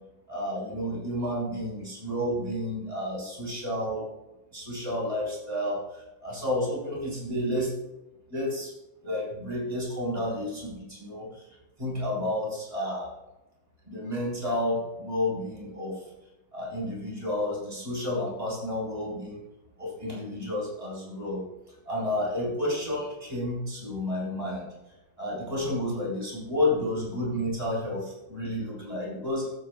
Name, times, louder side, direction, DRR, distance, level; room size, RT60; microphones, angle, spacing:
voice 1, 0.3-4.0 4.5-7.7 8.3-8.7 9.0-10.6 10.9-11.4 11.8-13.1 13.9-16.0 16.5-19.4 19.8-21.4 21.9-24.7 25.2-29.5, left 1 dB, 20° right, -5 dB, 4.0 m, -31 dB
15.0 x 8.8 x 2.3 m, 0.99 s
omnidirectional pair, 2.1 m